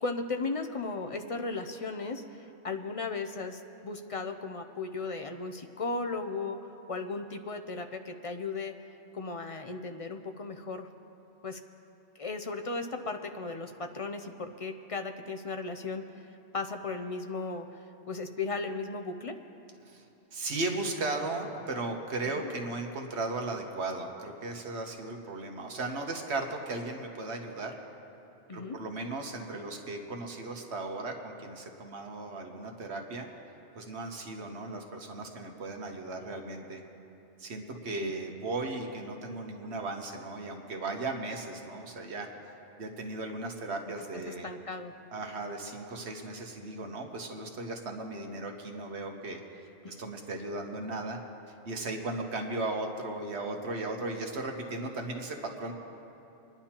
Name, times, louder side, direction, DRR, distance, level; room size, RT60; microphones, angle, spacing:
voice 1, 0.0-8.7 9.1-10.9 11.4-11.6 12.2-16.0 16.5-17.8 18.1-19.3 22.4-22.5 28.5-28.8 37.9-38.1 44.3-44.9 49.8-49.9, left 3 dB, 40° left, 5 dB, 0.5 m, -36 dB
voice 2, 20.3-27.7 28.5-33.3 33.7-36.8 37.4-42.3 42.8-44.5 45.1-49.4 49.9-51.2 51.6-55.7, right 2 dB, 70° right, 2 dB, 1.3 m, -36 dB
27.5 x 10.5 x 2.9 m, 2.9 s
omnidirectional pair, 1.2 m